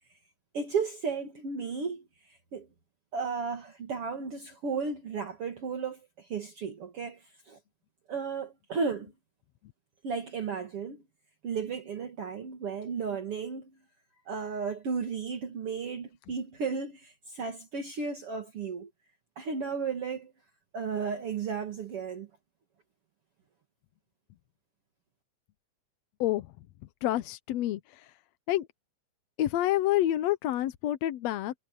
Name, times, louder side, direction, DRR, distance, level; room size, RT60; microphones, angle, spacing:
voice 1, 0.5-2.0 2.5-2.7 3.1-7.6 8.1-9.1 10.0-11.0 11.4-13.7 14.3-18.9 19.4-20.3 20.7-22.3, right 5 dB, 50° right, 3.0 m, -34 dB
voice 2, 27.0-28.1 28.5-28.7 29.4-31.5, left 13 dB, 70° left, 1.8 m, -28 dB
omnidirectional pair, 3.4 m